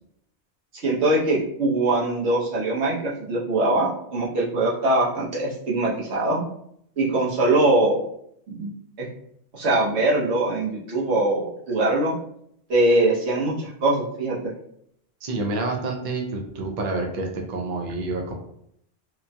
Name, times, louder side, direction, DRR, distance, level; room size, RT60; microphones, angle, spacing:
voice 1, 0.8-6.4 7.0-8.1 8.5-8.7 9.0-9.1 9.5-12.1 12.7-14.5, right 2 dB, 80° right, -5 dB, 1.1 m, -22 dB
voice 2, 15.2-18.4, right 2 dB, 55° right, 1 dB, 0.6 m, -28 dB
3.0 x 2.2 x 2.6 m, 0.71 s
omnidirectional pair, 1.1 m